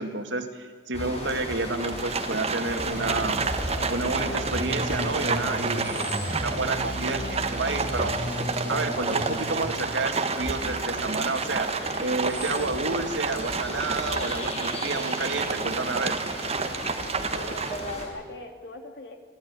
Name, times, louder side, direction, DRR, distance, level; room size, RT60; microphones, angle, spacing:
voice 1, 0.0-8.1 8.7-11.7 12.0-16.2, right 3 dB, 90° right, 5 dB, 2.4 m, -30 dB
sound 1, 0.9-18.0, left 1 dB, 35° left, 6.2 m, -37 dB
Livestock farm animals working animals, 1.7-18.1, right 4 dB, 35° right, 1.3 m, -30 dB
sound 2, 2.8-9.7, equal, 10° right, 7.5 m, -34 dB
voice 2, 17.2-19.2, left 2 dB, 65° left, 4 dB, 2.9 m, -39 dB
28.0 x 13.0 x 9.8 m, 1.5 s
head